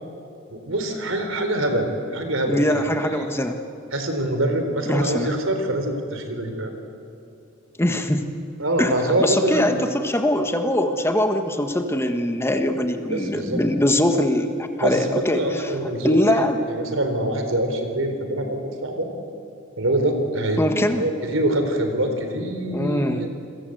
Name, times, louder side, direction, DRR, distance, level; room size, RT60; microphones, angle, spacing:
voice 1, 0.5-2.8 3.1-3.3 3.9-6.7 8.6-9.8 13.1-13.6 14.8-16.2 16.7-19.1 19.8-20.6 21.0-23.3, right 1 dB, 75° right, 6 dB, 4.0 m, -24 dB
voice 2, 2.4-3.5 4.9-5.3 7.8-8.3 8.8-16.6 20.6-21.1 22.7-23.2, left 1 dB, 15° left, 6 dB, 1.5 m, -22 dB
28.5 x 22.5 x 8.0 m, 2.7 s
head